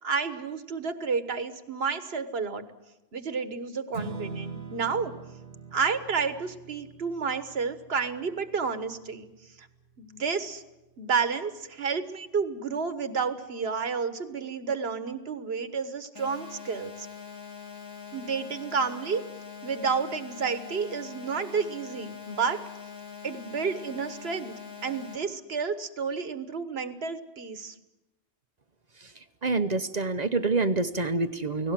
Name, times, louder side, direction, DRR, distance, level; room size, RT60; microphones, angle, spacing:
voice 1, 0.0-2.7 3.1-5.1 5.7-9.3 9.6-9.7 10.0-10.6 11.0-17.1 18.1-19.2 19.6-22.6 23.2-27.7, right 5 dB, 60° right, 10 dB, 1.6 m, -30 dB
Strum, 3.9-10.2, right 5 dB, 90° right, 2.3 m, -43 dB
sound 1, 16.1-25.1, left 6 dB, 85° left, 3.3 m, -43 dB
voice 2, 29.4-31.7, right 3 dB, 40° right, 9 dB, 1.0 m, -26 dB
29.5 x 18.5 x 7.5 m, 0.99 s
omnidirectional pair, 1.2 m